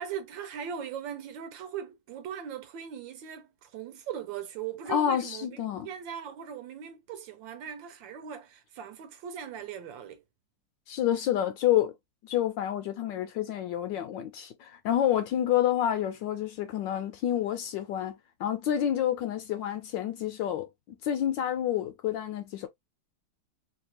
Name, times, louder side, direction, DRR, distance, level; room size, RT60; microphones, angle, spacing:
voice 1, 0.0-5.6 5.8-10.2, right 8 dB, 75° right, 1.2 m, -39 dB
voice 2, 4.9-5.9 10.9-11.9 12.2-20.7 21.0-22.7, left 11 dB, 75° left, 1.1 m, -28 dB
3.3 x 2.4 x 2.9 m
omnidirectional pair, 2.3 m